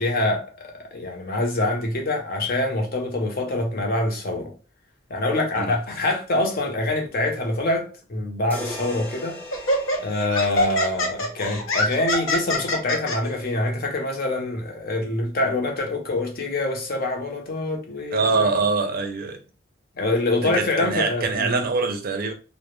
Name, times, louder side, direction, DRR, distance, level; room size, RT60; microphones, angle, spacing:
voice 1, 0.0-4.5 5.1-9.4 10.0-18.6 20.0-21.6, left 2 dB, 50° left, 0.7 m, -25 dB
sound 1, 8.5-12.6, left 1 dB, 10° left, 0.6 m, -39 dB
Laughter, 8.7-8.9 9.5-13.2, left 1 dB, 90° left, 0.7 m, -24 dB
voice 2, 18.1-19.4 20.4-22.3, right 4 dB, 50° right, 0.4 m, -24 dB
2.2 x 2.0 x 3.0 m
head